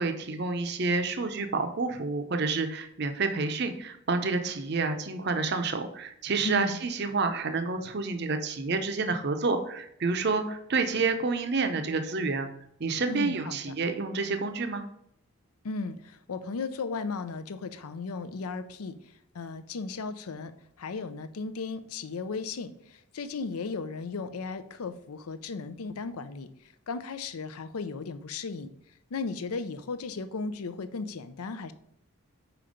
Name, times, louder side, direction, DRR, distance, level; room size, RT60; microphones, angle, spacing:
voice 1, 0.0-12.5 12.8-14.8, right 4 dB, 50° right, 7 dB, 0.6 m, -29 dB
voice 2, 6.4-6.8 13.1-13.7 15.6-19.0 19.3-20.5 20.8-26.5 26.9-28.7 29.1-31.7, left 4 dB, 90° left, 12 dB, 0.5 m, -35 dB
5.1 x 4.4 x 5.1 m, 0.72 s
head